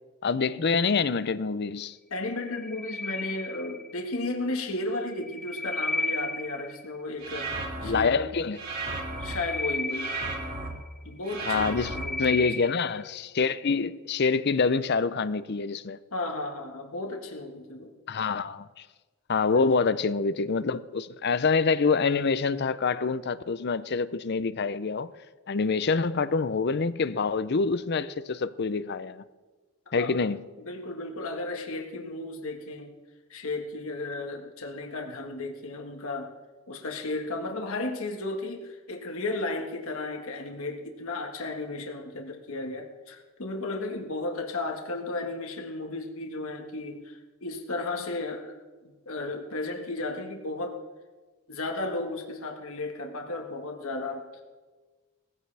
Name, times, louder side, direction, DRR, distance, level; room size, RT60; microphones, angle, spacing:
voice 1, 0.2-2.0 7.8-8.6 11.5-11.9 12.2-16.0 18.1-18.8 19.3-25.1 25.5-29.2 29.9-30.4, left 4 dB, 50° left, 0.5 m, -26 dB
voice 2, 2.1-7.5 7.8-8.1 9.2-10.1 11.0-12.4 16.1-17.9 19.5-19.9 30.0-30.2 30.6-33.0 33.3-36.3 36.7-48.5 48.8-50.8 51.5-54.4, left 2 dB, 75° left, 1.5 m, -34 dB
sound 1, 2.5-4.1 5.1-6.9 8.9-11.0 11.5-13.0, left 2 dB, 5° left, 0.6 m, -34 dB
sound 2, 7.2-8.0 8.5-9.3 9.9-10.7 11.2-12.0, right 3 dB, 40° right, 3.3 m, -34 dB
19.0 x 15.5 x 3.4 m
head